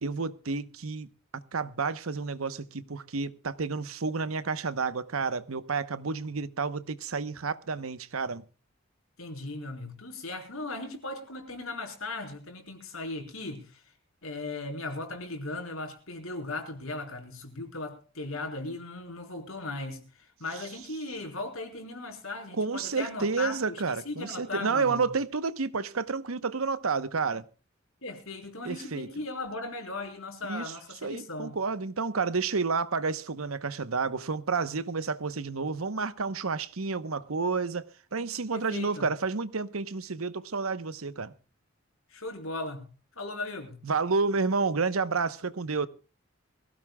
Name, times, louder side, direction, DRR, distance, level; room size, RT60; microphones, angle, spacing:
voice 1, 0.0-8.4 22.6-27.4 28.6-29.1 30.4-30.7 31.0-37.9 38.1-41.3 43.8-45.9, right 4 dB, 90° right, 1.0 m, -30 dB
voice 2, 9.2-13.9 14.2-25.1 28.0-31.6 38.5-39.1 42.1-42.9 43.2-43.8, left 2 dB, 80° left, 4.5 m, -37 dB
23.5 x 16.0 x 2.3 m
head